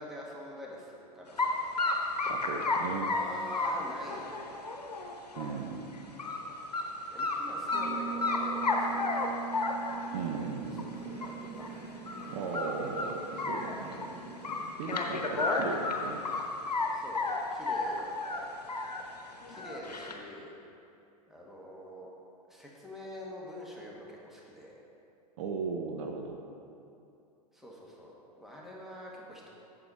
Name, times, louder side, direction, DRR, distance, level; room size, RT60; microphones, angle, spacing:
voice 1, 0.0-2.3 3.1-4.8 7.1-9.4 10.5-11.7 16.9-17.3 17.5-18.5 19.5-20.5 21.3-22.1 22.5-24.8 27.5-29.5, equal, ahead, -4 dB, 1.6 m, -46 dB
sound 1, 1.4-1.5 1.8-5.6 5.9-6.4 6.7-6.8 7.2-7.9 8.2-10.1 10.8-10.9 11.2-11.3 11.6-11.7 12.1-12.3 12.5-14.1 14.4-16.9 17.1-19.0 19.4-20.1, left 3 dB, 85° left, 1.0 m, -32 dB
voice 2, 2.3-3.1 5.4-5.9 10.1-10.9 12.3-14.1 14.8-16.2 25.4-26.4, right 5 dB, 50° right, 2 dB, 0.8 m, -37 dB
Mallet percussion, 7.7-14.8, right 10 dB, 20° right, 1.2 m, -42 dB
sound 2, 9.7-14.9, right 2 dB, 35° right, 1.5 m, -47 dB
8.5 x 7.2 x 4.2 m, 2.6 s
figure-of-eight pair, 95°, 20 cm